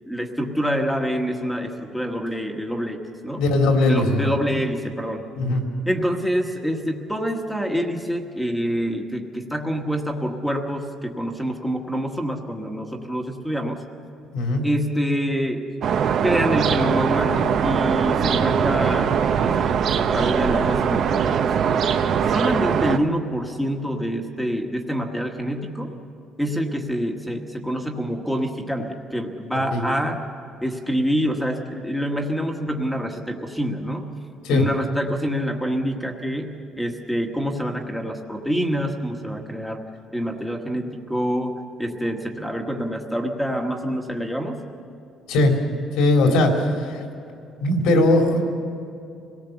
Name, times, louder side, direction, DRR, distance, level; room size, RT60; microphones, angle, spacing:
voice 1, 0.1-3.5 3.9-5.2 5.8-13.8 14.6-15.6 16.2-21.4 22.3-25.9 26.4-30.3 30.6-34.1 34.5-39.8 40.1-44.6 46.2-46.4, equal, ahead, 3 dB, 1.4 m, -26 dB
voice 2, 3.4-4.3 5.4-5.6 14.3-14.6 29.7-29.8 34.5-34.6 45.3-45.5 46.0-46.5 47.6-48.4, left 2 dB, 90° left, 2 dB, 3.7 m, -18 dB
sound 1, 15.8-23.0, right 7 dB, 50° right, 0.8 m, -21 dB
26.0 x 18.0 x 7.0 m, 2.5 s
cardioid pair, 165°, 0 cm